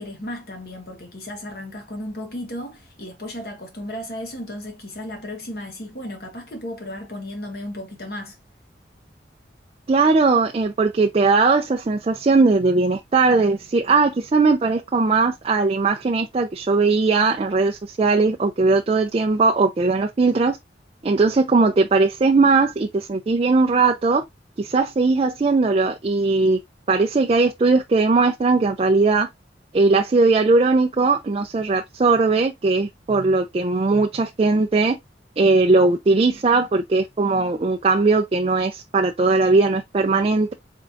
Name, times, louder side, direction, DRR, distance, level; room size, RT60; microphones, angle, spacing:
voice 1, 0.0-8.4, left 1 dB, 55° left, 1.2 m, -34 dB
voice 2, 9.9-20.6 21.0-24.2 24.6-26.6 26.9-29.3 29.7-35.0 35.4-40.5, right 3 dB, 30° right, 0.4 m, -19 dB
4.3 x 3.6 x 2.5 m
head